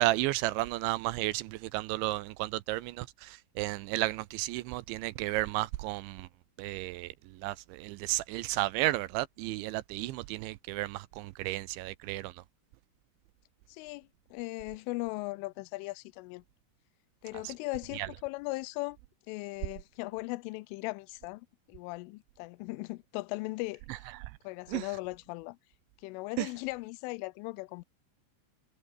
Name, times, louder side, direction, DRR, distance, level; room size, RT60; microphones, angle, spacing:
voice 1, 0.0-6.3 6.6-12.4 17.4-17.5 17.9-18.1 24.2-24.3 24.7-24.9 26.4-26.5, right 18 dB, 80° right, 2.9 m, -33 dB
voice 2, 13.7-16.4 17.2-19.0 19.3-23.8 24.4-25.6 26.0-27.8, left 23 dB, 90° left, 3.1 m, -38 dB
omnidirectional pair, 5.6 m